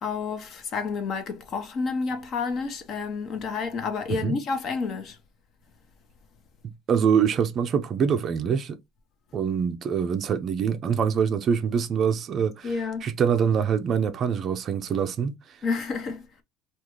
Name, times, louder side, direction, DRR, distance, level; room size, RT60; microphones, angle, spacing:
voice 1, 0.0-5.2 12.6-13.1 15.6-16.3, left 4 dB, 40° left, 0.8 m, -30 dB
voice 2, 6.9-8.8 9.3-15.6, right 7 dB, 35° right, 0.4 m, -25 dB
3.6 x 2.4 x 3.0 m
cardioid pair, 150°, 0 cm